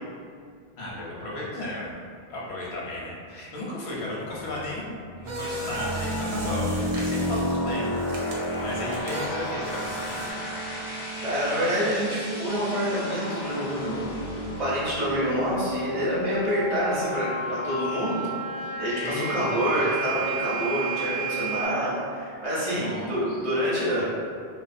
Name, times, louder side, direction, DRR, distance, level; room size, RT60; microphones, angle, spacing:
voice 1, 0.8-1.9 2.3-7.8 8.1-10.4 19.0-19.5 22.7-23.4, left 1 dB, 90° left, -5 dB, 0.9 m, -34 dB
sound 1, 4.4-17.0, equal, 55° left, 0.5 m, -32 dB
sound 2, 5.2-10.3, right 1 dB, 90° right, 0.8 m, -37 dB
voice 2, 11.2-14.0 14.6-18.2 18.8-24.0, equal, 45° right, -9 dB, 0.7 m, -27 dB
sound 3, 12.0-21.6, right 2 dB, 25° right, 0.3 m, -34 dB
2.4 x 2.3 x 2.5 m, 2.2 s
omnidirectional pair, 1.0 m